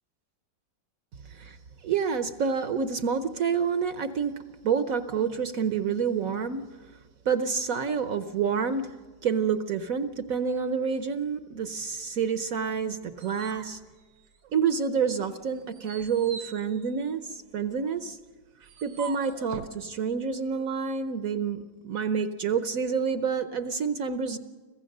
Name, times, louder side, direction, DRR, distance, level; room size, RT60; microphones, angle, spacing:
voice 1, 1.8-4.4 4.6-6.6 7.3-8.9 9.2-13.8 14.5-18.2 18.8-24.4, right 6 dB, 55° right, 10 dB, 1.0 m, -28 dB
Llanto de un perro, 12.8-14.7 15.2-19.8, right 6 dB, 80° right, 1.8 m, -45 dB
25.5 x 16.0 x 6.6 m, 1.4 s
omnidirectional pair, 2.0 m